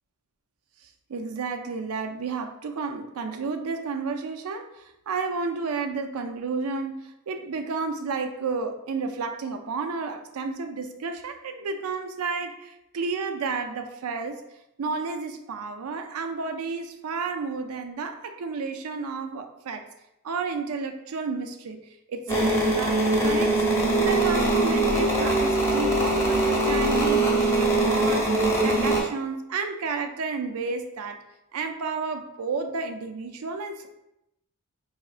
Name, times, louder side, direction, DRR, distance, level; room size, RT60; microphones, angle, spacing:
voice 1, 0.8-14.4 14.8-19.8 20.2-21.8 22.1-23.6 24.0-28.3 28.6-31.2 31.5-33.9, right 4 dB, 75° right, 6 dB, 0.4 m, -31 dB
sound 1, 22.3-29.0, right 2 dB, 10° left, 0.8 m, -22 dB
4.8 x 3.1 x 2.4 m, 0.86 s
head